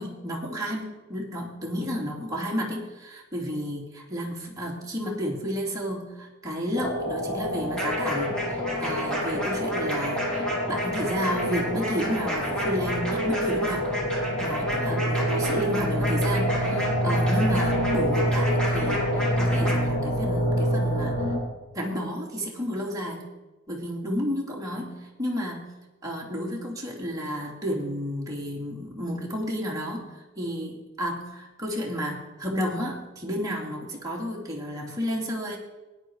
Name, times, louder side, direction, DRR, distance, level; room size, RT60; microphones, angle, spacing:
voice 1, 0.0-13.9 14.4-21.2 21.7-23.3 23.7-25.7 26.0-35.6, equal, 15° right, -3 dB, 2.8 m, -31 dB
sound 1, 6.7-21.4, equal, 45° left, 5.5 m, -27 dB
sound 2, 7.8-19.7, equal, 5° left, 4.1 m, -32 dB
17.0 x 10.0 x 4.7 m, 1.1 s
head